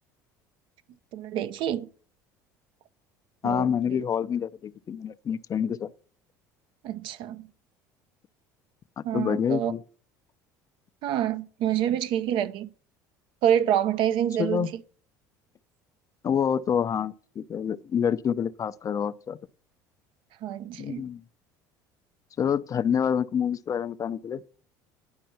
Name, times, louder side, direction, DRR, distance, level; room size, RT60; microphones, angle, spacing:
voice 1, 1.1-1.9 3.4-4.0 6.8-7.5 9.0-9.7 11.0-12.7 13.4-14.7 20.4-21.0, right 10 dB, 60° right, 0.7 m, -27 dB
voice 2, 3.4-5.9 9.1-9.8 14.4-14.7 16.2-19.4 20.8-21.2 22.4-24.4, left 8 dB, 35° left, 0.5 m, -27 dB
10.5 x 5.3 x 5.8 m
hypercardioid pair, 70°, 10 cm